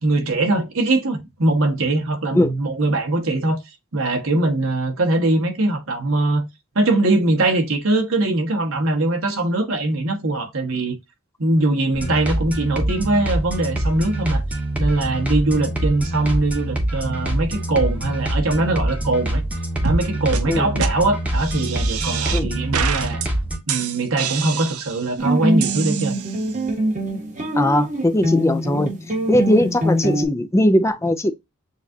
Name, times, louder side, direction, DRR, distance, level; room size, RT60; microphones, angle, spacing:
voice 1, 0.0-3.6 3.9-6.4 6.7-10.9 11.4-14.4 14.8-19.4 19.8-23.2 23.7-26.2, right 2 dB, 65° right, 1.2 m, -21 dB
sound 1, 11.9-23.6, right 1 dB, 5° right, 0.9 m, -25 dB
sound 2, 19.8-20.0 20.3-20.4 20.8-20.9 21.3-22.4 22.7-23.3 23.7-25.1 25.6-26.5, right 7 dB, 90° right, 0.6 m, -27 dB
sound 3, 25.2-30.3, right 1 dB, 35° right, 1.5 m, -23 dB
voice 2, 27.6-28.9 29.3-31.3, left 1 dB, 15° left, 0.5 m, -19 dB
6.9 x 2.5 x 2.7 m
head